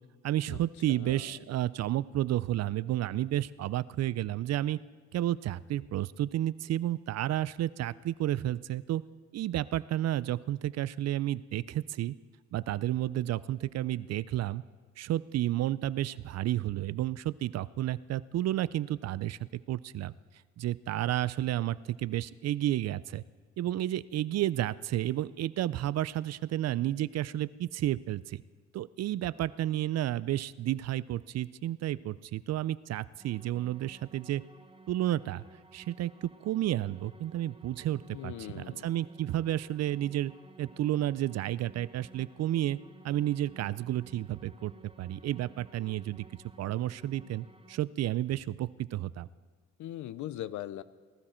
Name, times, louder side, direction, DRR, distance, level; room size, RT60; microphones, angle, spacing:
voice 1, 0.2-4.8 5.1-9.0 9.3-12.1 12.5-14.6 15.0-19.4 19.7-20.1 20.6-23.2 23.6-28.4 28.7-34.4 34.9-35.4 35.7-40.3 40.6-42.8 43.0-44.7 45.0-46.2 46.6-49.3, right 13 dB, 60° right, 19 dB, 0.4 m, -31 dB
voice 2, 0.9-1.4 38.1-38.9 49.8-50.8, left 13 dB, 75° left, 16 dB, 0.6 m, -40 dB
sound 1, 33.2-47.8, right 2 dB, 20° right, 0.9 m, -56 dB
19.5 x 12.5 x 4.4 m, 1.5 s
cardioid pair, 90°, 30 cm